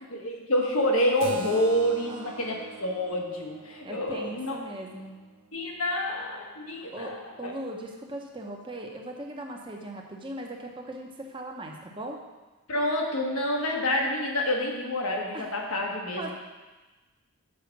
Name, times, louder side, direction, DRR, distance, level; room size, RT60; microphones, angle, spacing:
voice 1, 0.1-4.6 5.5-7.5 12.7-16.3, left 1 dB, 75° left, 0 dB, 1.4 m, -28 dB
Keyboard (musical), 1.2-6.3, right 5 dB, 65° right, 0.7 m, -44 dB
voice 2, 2.1-2.7 3.8-5.2 6.7-12.2 15.3-15.5 16.2-16.3, right 1 dB, 20° right, 1 dB, 0.8 m, -39 dB
7.6 x 4.9 x 5.9 m, 1.2 s
head